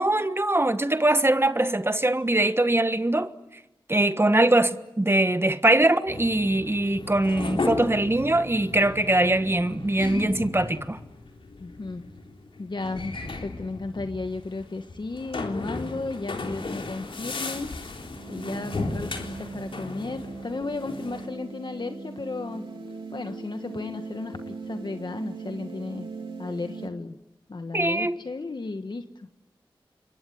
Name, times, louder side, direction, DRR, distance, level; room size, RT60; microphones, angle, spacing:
voice 1, 0.0-3.3 3.9-11.0 27.7-28.2, right 1 dB, 25° right, 1.4 m, -22 dB
sound 1, 6.1-21.3, left 3 dB, 80° left, 3.9 m, -35 dB
voice 2, 11.6-12.0 12.6-17.7 18.3-22.6 23.1-26.1 26.4-27.2 27.5-29.3, left 3 dB, 60° left, 1.5 m, -34 dB
sound 2, 18.2-26.9, right 4 dB, 90° right, 3.0 m, -40 dB
27.0 x 23.0 x 9.5 m
cardioid pair, 45°, 9 cm